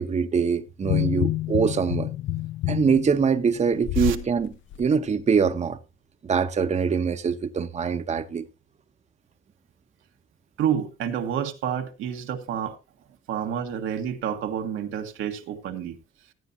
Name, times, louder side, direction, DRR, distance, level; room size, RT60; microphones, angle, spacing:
voice 1, 0.0-2.1 2.7-4.5 4.8-5.8 6.2-8.4, right 6 dB, 35° right, 0.8 m, -23 dB
sound 1, 0.8-4.3 4.7-4.9, left 14 dB, 75° left, 0.6 m, -28 dB
voice 2, 10.6-12.8 13.3-16.0, right 9 dB, 85° right, 1.5 m, -29 dB
15.5 x 9.6 x 2.7 m
cardioid pair, 90°, 20 cm